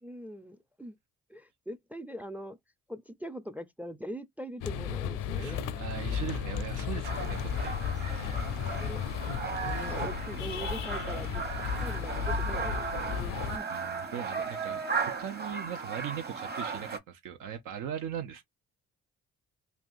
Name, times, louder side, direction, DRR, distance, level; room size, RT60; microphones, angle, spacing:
voice 1, 0.0-1.0 1.3-2.6 2.9-5.6 8.8-9.0 9.6-11.4 11.8-13.7, equal, 5° right, 0.4 m, -42 dB
Crossing the road at Tottenham Court Road, 4.6-13.6, left 7 dB, 80° left, 0.6 m, -34 dB
voice 2, 5.4-8.5 13.7-18.4, right 9 dB, 80° right, 0.6 m, -40 dB
sound 1, 7.0-17.0, right 5 dB, 30° right, 1.1 m, -36 dB
3.3 x 2.6 x 2.5 m
supercardioid pair, 60°, 31 cm